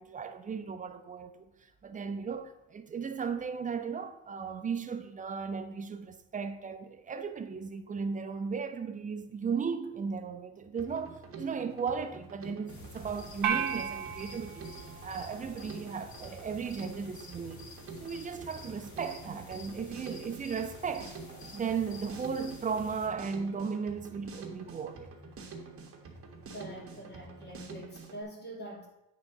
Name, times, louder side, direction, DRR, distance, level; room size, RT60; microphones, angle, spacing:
voice 1, 0.0-1.5 1.8-14.6 15.0-17.7 18.0-21.2 21.5-25.1, right 6 dB, 20° right, 0.6 m, -36 dB
Drum kit, 10.8-28.2, right 4 dB, 40° right, 1.7 m, -47 dB
sound 1, 12.7-23.1, left 2 dB, 50° left, 2.3 m, -50 dB
sound 2, 13.4-15.9, right 7 dB, 60° right, 0.8 m, -35 dB
voice 2, 26.5-28.9, right 1 dB, 30° left, 2.2 m, -44 dB
8.5 x 3.9 x 5.9 m
cardioid pair, 115°, 36 cm